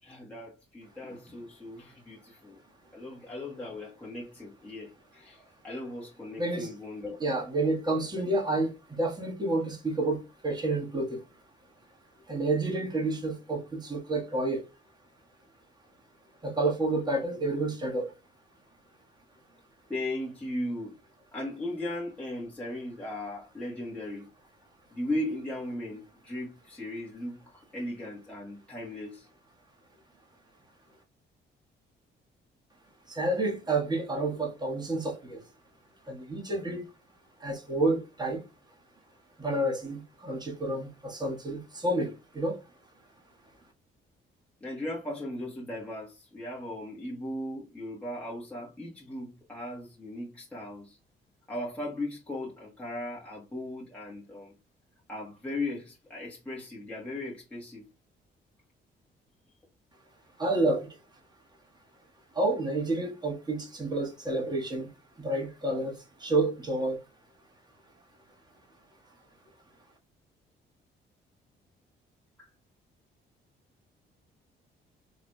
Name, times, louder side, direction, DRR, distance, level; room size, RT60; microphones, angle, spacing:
voice 1, 0.0-2.6 2.9-7.2 19.9-21.0 21.3-24.3 24.9-29.3 44.6-51.0 51.5-54.5 55.1-57.9 69.0-69.1 72.4-72.5, left 1 dB, 5° left, 1.5 m, -37 dB
voice 2, 6.4-6.7 7.2-11.2 12.3-14.6 16.4-18.1 33.1-35.4 36.0-36.8 37.4-38.4 39.4-42.6 60.4-60.9 62.3-64.9 65.2-67.0, right 2 dB, 20° right, 1.7 m, -29 dB
4.7 x 3.1 x 2.3 m
cardioid pair, 90°, 20 cm